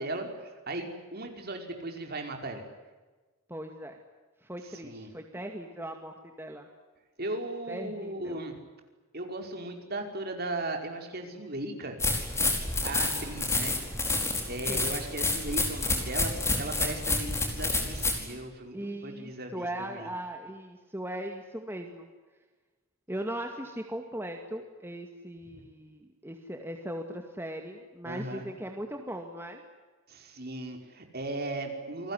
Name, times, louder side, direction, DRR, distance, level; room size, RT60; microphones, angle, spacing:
voice 1, 0.0-2.6 4.8-5.1 7.2-8.6 9.1-12.0 12.8-13.8 14.5-18.8 19.0-20.1 25.5-25.6 28.1-28.5 30.1-32.1, right 2 dB, 45° right, 4 dB, 5.2 m, -37 dB
voice 2, 3.5-4.0 4.4-6.7 7.7-8.4 14.7-14.9 18.7-22.1 23.1-29.6, right 1 dB, 10° right, 3 dB, 2.2 m, -39 dB
sound 1, 12.0-18.2, left 2 dB, 10° left, 4.9 m, -29 dB
28.5 x 21.0 x 9.9 m, 1.3 s
head